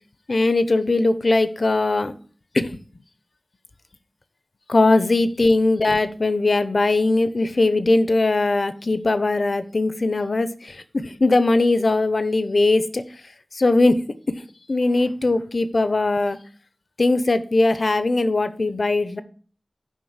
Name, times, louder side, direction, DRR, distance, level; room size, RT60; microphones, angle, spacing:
voice 1, 0.3-2.1 2.5-2.8 4.7-13.0 13.5-14.0 14.3-14.4 14.7-16.4 17.0-19.2, left 2 dB, 60° left, 0.8 m, -20 dB
7.4 x 5.4 x 7.1 m
wide cardioid pair, 70°, 0 cm